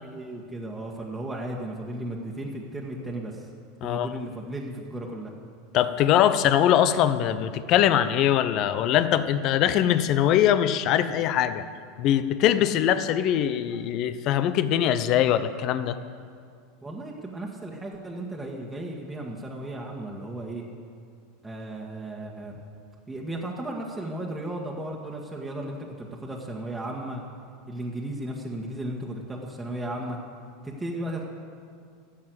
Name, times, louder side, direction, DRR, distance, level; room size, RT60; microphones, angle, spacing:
voice 1, 0.0-3.5 3.8-5.3 16.8-20.6 21.4-22.6 23.1-27.3 27.7-30.2 30.6-31.2, right 1 dB, 10° right, -3 dB, 1.6 m, -35 dB
voice 2, 5.7-11.6 12.0-16.0, left 10 dB, 50° left, 12 dB, 0.7 m, -22 dB
12.5 x 7.5 x 7.8 m, 2.3 s
hypercardioid pair, 90°, 0 cm